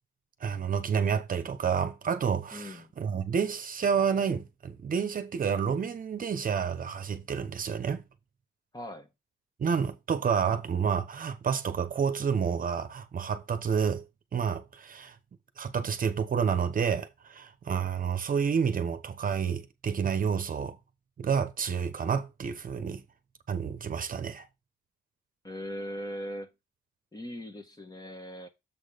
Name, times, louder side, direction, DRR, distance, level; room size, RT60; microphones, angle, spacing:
voice 1, 0.4-8.0 9.6-14.0 14.3-15.2 15.6-20.8 21.2-23.0 23.5-24.4, right 6 dB, 45° right, 1.0 m, -29 dB
voice 2, 2.5-2.9 8.7-9.1 25.4-26.5 27.1-28.5, equal, 20° left, 1.6 m, -39 dB
7.4 x 3.9 x 5.1 m
cardioid pair, 90°, 20 cm